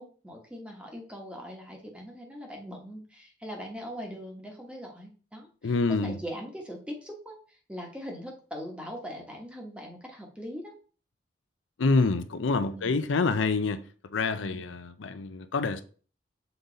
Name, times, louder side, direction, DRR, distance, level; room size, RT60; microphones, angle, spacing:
voice 1, 0.0-10.7 12.7-12.9, equal, 5° right, 1.2 m, -41 dB
voice 2, 5.6-6.1 11.8-13.8 14.1-15.8, left 3 dB, 85° left, 0.6 m, -27 dB
6.7 x 3.9 x 4.0 m
head